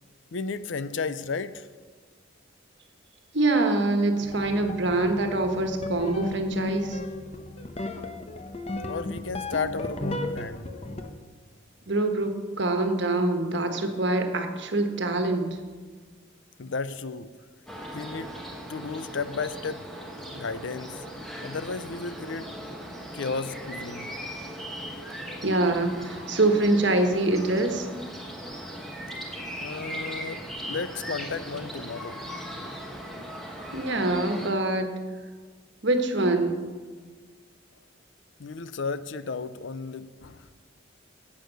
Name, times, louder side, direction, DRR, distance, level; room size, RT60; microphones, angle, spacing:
voice 1, 0.3-1.7 8.9-10.7 16.6-17.3 17.9-18.4 18.7-19.9 20.3-21.0 21.4-22.5 23.1-24.2 29.6-32.2 38.4-40.6, left 4 dB, 65° left, 14 dB, 0.5 m, -33 dB
voice 2, 3.3-7.0 11.9-15.6 25.4-27.9 33.7-34.9 35.8-36.6, right 2 dB, 60° right, 5 dB, 1.4 m, -25 dB
sound 1, 4.2-11.1, left 2 dB, 30° left, 0.8 m, -35 dB
sound 2, 17.7-34.5, equal, ahead, 1.3 m, -38 dB
11.0 x 8.5 x 6.5 m, 1.5 s
head